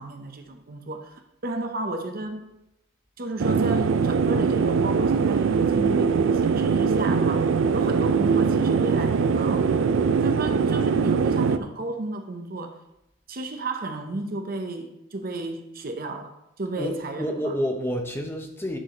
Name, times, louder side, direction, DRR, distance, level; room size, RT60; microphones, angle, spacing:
voice 1, 0.0-2.5 3.2-9.7 10.2-12.8 13.3-17.5, right 2 dB, 50° right, 0.8 m, -33 dB
sound 1, 3.4-11.6, right 5 dB, 80° right, 0.4 m, -22 dB
voice 2, 16.7-18.8, equal, 10° left, 0.9 m, -29 dB
10.0 x 4.8 x 3.7 m
head